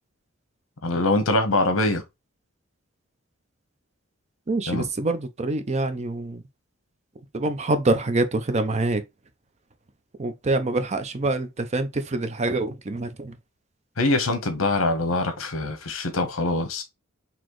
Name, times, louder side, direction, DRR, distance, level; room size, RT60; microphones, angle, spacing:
voice 1, 0.8-2.0 4.7-4.8 14.0-16.8, left 2 dB, 75° left, 1.0 m, -23 dB
voice 2, 4.5-6.4 7.3-9.0 10.2-13.4, right 2 dB, 35° right, 0.5 m, -25 dB
4.1 x 2.9 x 3.0 m
head